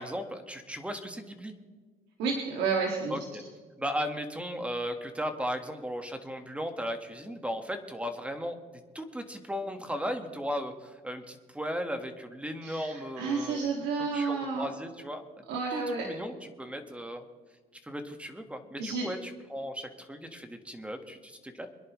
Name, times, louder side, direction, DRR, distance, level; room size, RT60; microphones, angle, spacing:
voice 1, 0.0-1.5 3.1-3.4 3.8-8.6 8.9-13.7 14.1-15.4 15.7-17.3 17.8-21.7, equal, 5° right, 6 dB, 1.6 m, -36 dB
voice 2, 2.2-3.2 12.6-14.7 15.5-16.1 18.8-19.1, right 4 dB, 85° right, 0 dB, 2.1 m, -31 dB
24.5 x 10.5 x 3.2 m, 1.4 s
cardioid pair, 110°, 17 cm